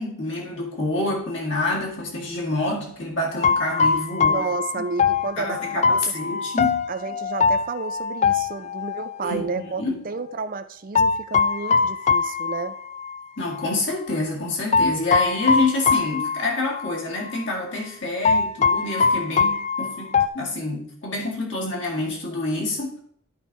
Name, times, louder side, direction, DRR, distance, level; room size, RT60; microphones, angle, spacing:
voice 1, 0.0-4.4 5.4-6.9 9.2-10.0 13.4-23.0, left 2 dB, 65° left, -3 dB, 2.1 m, -27 dB
sound 1, 3.4-9.2 10.9-13.2 13.5-13.6 14.7-17.0 17.3-17.4 18.2-20.3, left 5 dB, 35° left, 0.4 m, -22 dB
voice 2, 4.2-6.1 6.9-12.8, right 4 dB, 45° right, 11 dB, 0.5 m, -31 dB
11.0 x 4.9 x 4.0 m, 0.63 s
head